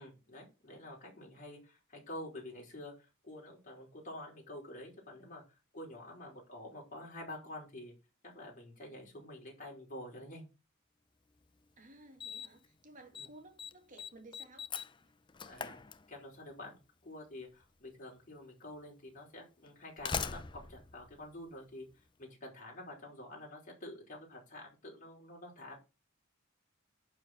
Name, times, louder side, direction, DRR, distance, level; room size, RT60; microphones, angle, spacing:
voice 1, 0.0-5.4 5.7-7.9 8.2-10.5 13.2-13.3 15.4-15.8 16.1-21.9 22.2-25.8, left 1 dB, 40° left, 4.9 m, -48 dB
Slam, 11.4-11.5 12.2-12.7 12.9-13.3 13.6-16.5 17.6-17.7 18.6-18.7 19.6-22.0, left 6 dB, 25° left, 0.5 m, -42 dB
voice 2, 11.8-14.7, right 2 dB, 40° right, 2.2 m, -56 dB
11.0 x 4.8 x 6.0 m
head